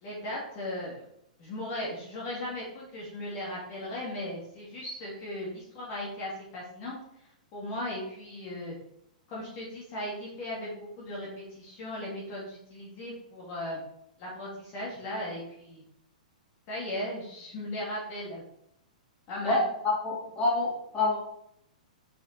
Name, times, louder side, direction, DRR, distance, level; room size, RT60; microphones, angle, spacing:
voice 1, 0.0-1.0 1.4-6.9 7.5-8.7 9.3-13.8 14.2-15.8 16.7-18.4 19.3-19.6, left 1 dB, 35° left, -5 dB, 2.7 m, -37 dB
voice 2, 19.8-20.7 20.9-21.2, left 3 dB, 20° left, -5 dB, 3.2 m, -26 dB
6.3 x 5.5 x 4.4 m, 0.74 s
hypercardioid pair, 145°, 4 cm